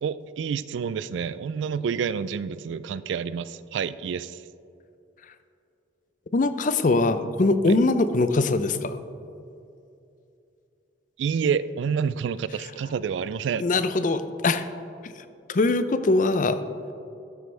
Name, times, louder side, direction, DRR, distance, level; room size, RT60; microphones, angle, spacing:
voice 1, 0.0-4.4 7.7-7.8 11.2-13.7, right 6 dB, 80° right, 16 dB, 0.3 m, -28 dB
voice 2, 6.3-9.0 13.6-14.6 15.5-16.6, left 3 dB, 45° left, 12 dB, 0.5 m, -22 dB
13.0 x 7.9 x 3.3 m, 2.6 s
head